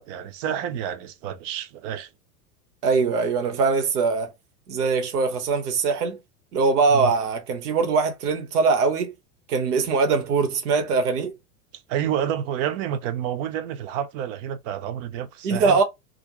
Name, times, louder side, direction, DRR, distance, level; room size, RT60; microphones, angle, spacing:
voice 1, 0.0-2.1 6.9-7.1 11.9-15.8, right 10 dB, 55° right, 0.6 m, -29 dB
voice 2, 2.8-4.3 4.7-6.2 6.5-9.1 9.5-11.3 15.4-15.8, right 4 dB, 75° right, 0.9 m, -22 dB
2.5 x 2.0 x 2.9 m
hypercardioid pair, 100°, 46 cm